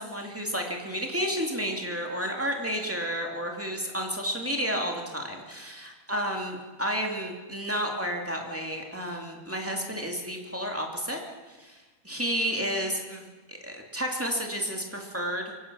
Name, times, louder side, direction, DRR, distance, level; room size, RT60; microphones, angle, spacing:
voice 1, 0.0-11.2 11.5-15.5, equal, 5° right, 1 dB, 1.3 m, -31 dB
24.0 x 18.0 x 6.2 m, 1.3 s
omnidirectional pair, 4.4 m